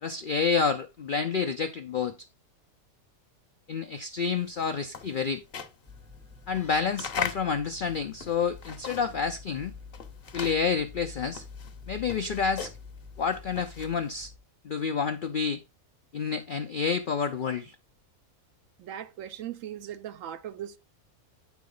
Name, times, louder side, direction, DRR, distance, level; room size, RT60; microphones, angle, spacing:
voice 1, 0.0-2.2 3.7-5.4 6.5-9.7 10.3-11.4 11.9-12.7 13.2-14.3 14.6-15.6 16.1-17.8, left 5 dB, 70° left, 0.4 m, -29 dB
sound 1, 4.3-9.3 9.6-14.1, left 7 dB, 50° left, 0.9 m, -39 dB
sound 2, 5.9-14.4, left 4 dB, 10° right, 0.5 m, -47 dB
voice 2, 18.8-20.8, right 10 dB, 70° right, 1.0 m, -39 dB
9.3 x 4.7 x 3.8 m
omnidirectional pair, 1.5 m